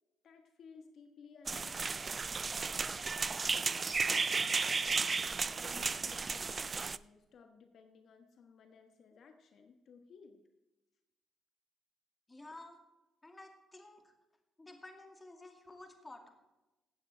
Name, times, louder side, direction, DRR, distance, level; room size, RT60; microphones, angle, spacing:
voice 1, 0.2-3.2 3.5-4.3 5.4-10.4, left 5 dB, 65° left, 5 dB, 1.3 m, -58 dB
sound 1, 1.5-7.0, right 4 dB, 35° right, 0.4 m, -34 dB
voice 2, 12.3-12.8 13.2-14.1 14.6-16.3, left 2 dB, 20° left, 4 dB, 2.3 m, -52 dB
16.0 x 8.6 x 4.5 m, 1.0 s
cardioid pair, 90°, 0 cm